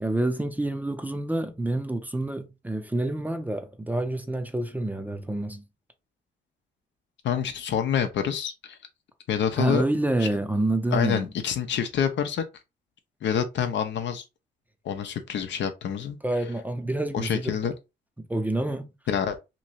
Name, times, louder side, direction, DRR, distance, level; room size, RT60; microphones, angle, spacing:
voice 1, 0.0-5.6 9.6-11.3 16.2-17.5 18.2-18.9, right 1 dB, 10° right, 0.6 m, -28 dB
voice 2, 7.2-8.8 9.3-9.8 10.2-10.3 10.9-12.4 13.2-14.2 14.8-16.2 17.1-17.7 19.1-19.4, left 8 dB, 65° left, 0.7 m, -27 dB
3.0 x 2.6 x 2.9 m
cardioid pair, 90°, 20 cm